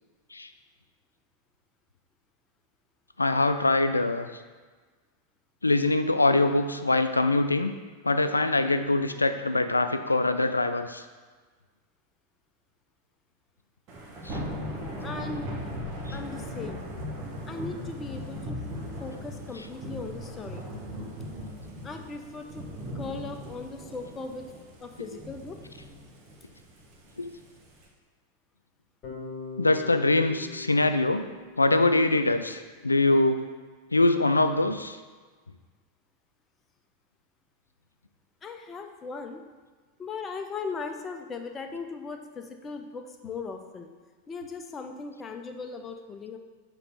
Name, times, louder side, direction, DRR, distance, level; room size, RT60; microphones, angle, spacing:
voice 1, 3.2-4.3 5.6-7.7 8.0-11.0 14.2-14.4 27.2-27.3 29.6-31.3 31.6-33.4 33.9-35.0, left 2 dB, 80° left, 9 dB, 0.4 m, -23 dB
Thunder / Rain, 13.9-27.9, equal, 35° right, 1.1 m, -38 dB
voice 2, 15.0-15.5 16.1-16.9 17.5-18.6 19.0-20.6 21.8-22.6 22.9-24.4 24.8-25.6 38.4-39.4 40.0-43.9 44.3-46.4, left 4 dB, 20° left, 5 dB, 0.6 m, -38 dB
Bass guitar, 29.0-33.1, left 4 dB, 35° left, 1.8 m, -43 dB
6.7 x 3.0 x 5.6 m, 1.4 s
figure-of-eight pair, 90°, 0 cm